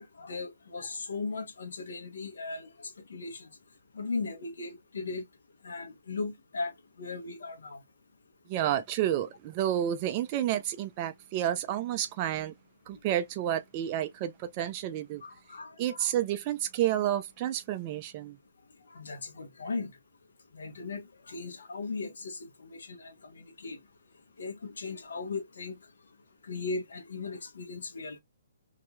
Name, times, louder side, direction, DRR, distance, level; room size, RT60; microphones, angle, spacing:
voice 1, 0.0-3.5 3.9-5.2 5.6-7.8 15.2-16.1 18.9-19.9 20.5-23.8 24.4-25.8 26.4-28.2, left 3 dB, 75° left, 1.0 m, -38 dB
voice 2, 8.5-12.5 12.9-15.2 15.8-18.4, right 11 dB, 30° right, 0.6 m, -30 dB
2.9 x 2.8 x 2.3 m
hypercardioid pair, 145°, 0 cm